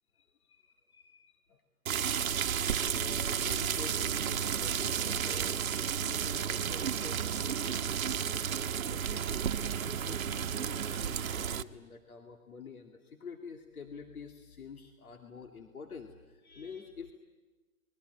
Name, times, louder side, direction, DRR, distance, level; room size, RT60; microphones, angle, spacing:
voice 1, 0.1-1.6 2.2-2.3 2.8-9.3 9.6-17.1, left 5 dB, 85° left, 5 dB, 2.5 m, -48 dB
sound 1, 1.9-11.6, right 8 dB, 70° right, 1.2 m, -32 dB
30.0 x 21.5 x 9.2 m, 1.2 s
hypercardioid pair, 155°, 42 cm